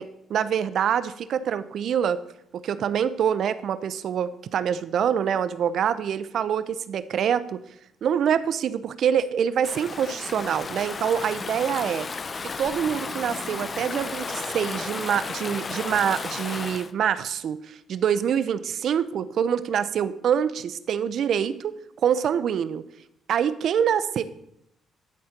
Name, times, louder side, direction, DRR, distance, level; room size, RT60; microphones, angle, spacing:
voice 1, 0.0-2.2 2.5-7.6 8.0-12.1 12.6-21.8 22.0-22.8 23.3-24.2, right 8 dB, 65° right, 14 dB, 0.6 m, -25 dB
Stream / Ocean, 9.6-16.9, left 4 dB, 35° left, 0.6 m, -33 dB
12.0 x 4.4 x 6.5 m, 0.77 s
cardioid pair, 90°, 0 cm